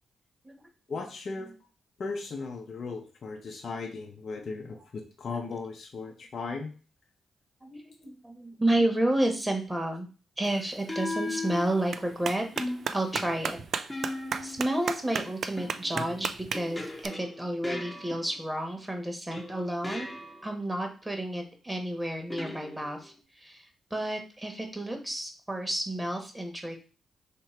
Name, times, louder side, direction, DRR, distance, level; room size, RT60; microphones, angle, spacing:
voice 1, 0.9-1.5 2.0-6.7, left 4 dB, 60° left, 3 dB, 0.6 m, -37 dB
voice 2, 4.4-4.8 6.0-6.1 7.6-10.1 10.4-12.4 12.9-13.6 13.9-14.1 14.4-20.1 20.4-26.8, right 1 dB, 15° right, 3 dB, 1.2 m, -31 dB
sound 1, 8.8-9.1 10.9-12.1 12.6-14.7 15.6-18.6 19.3-20.6 22.3-23.2, left 2 dB, 15° left, 0.8 m, -38 dB
Clapping, 10.4-17.1, right 6 dB, 70° right, 0.3 m, -37 dB
3.2 x 2.9 x 4.3 m, 0.35 s
supercardioid pair, 55°, 0 cm